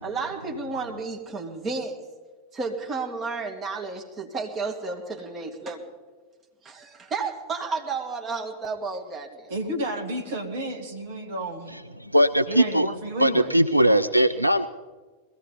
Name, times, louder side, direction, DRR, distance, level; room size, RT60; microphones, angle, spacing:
voice 1, 0.0-2.0 2.5-5.8 6.6-9.5, right 4 dB, 25° right, 2 dB, 2.0 m, -32 dB
voice 2, 9.5-11.8 12.5-13.5, right 1 dB, 55° right, 5 dB, 2.0 m, -31 dB
voice 3, 11.7-12.9 13.2-14.7, right 1 dB, 90° right, 10 dB, 0.4 m, -20 dB
21.0 x 15.5 x 4.0 m, 1.3 s
figure-of-eight pair, 90°, 0 cm